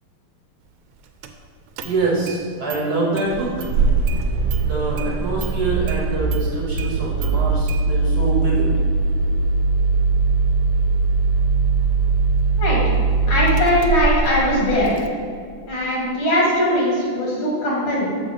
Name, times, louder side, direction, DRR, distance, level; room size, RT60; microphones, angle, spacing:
Engine starting, 1.2-1.3 1.8-2.4 2.7-2.8 3.2-15.1, right 4 dB, 75° right, 1.3 m, -21 dB
voice 1, 1.8-3.5 4.6-8.7, right 3 dB, 55° right, -4 dB, 1.3 m, -25 dB
voice 2, 13.3-14.9 15.7-18.1, equal, 75° left, -5 dB, 2.6 m, -20 dB
6.8 x 3.9 x 5.1 m, 2.2 s
omnidirectional pair, 2.3 m